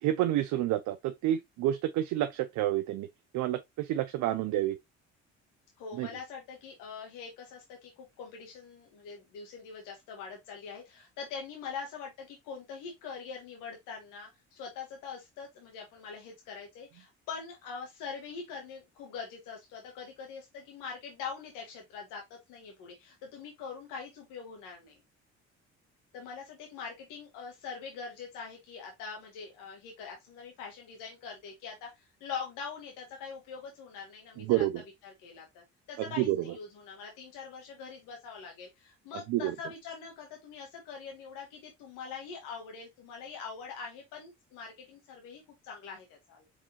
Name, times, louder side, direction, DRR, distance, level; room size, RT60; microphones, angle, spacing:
voice 1, 0.0-3.1 3.3-4.8 5.9-6.1 34.4-34.8 36.0-36.5 39.3-39.5, right 13 dB, 70° right, 0.6 m, -29 dB
voice 2, 5.8-25.0 26.1-34.6 35.0-46.4, left 5 dB, 80° left, 1.4 m, -43 dB
4.7 x 3.7 x 2.7 m
supercardioid pair, 70°, 31 cm